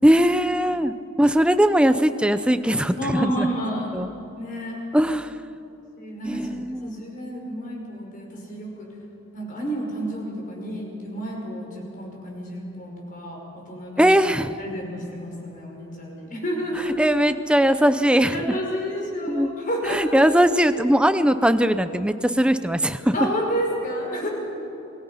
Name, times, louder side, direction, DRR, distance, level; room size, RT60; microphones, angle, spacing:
voice 1, 0.0-3.5 3.9-4.1 4.9-5.3 6.2-6.9 14.0-14.5 17.0-18.4 19.3-19.5 19.9-23.0, equal, 5° right, 11 dB, 0.6 m, -20 dB
voice 2, 3.0-3.9 4.4-4.8 6.0-6.5 6.8-8.9 9.3-14.1 14.6-17.1 18.3-20.3 23.1-24.3, equal, 40° left, -1 dB, 5.6 m, -30 dB
28.0 x 21.0 x 5.8 m, 2.9 s
head